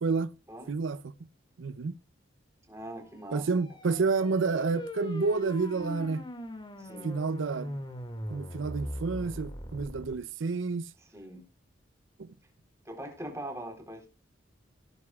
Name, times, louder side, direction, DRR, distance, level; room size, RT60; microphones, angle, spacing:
voice 1, 0.0-0.3 0.7-1.1 1.6-2.0 3.3-6.3 7.0-7.8 8.3-10.9 12.2-12.3, right 4 dB, 85° right, 0.5 m, -29 dB
voice 2, 2.7-3.5 6.8-7.1 11.1-11.4 12.8-14.1, right 1 dB, 15° right, 3.9 m, -42 dB
sound 1, 3.2-10.2, equal, 25° left, 2.1 m, -40 dB
18.0 x 9.6 x 2.4 m
head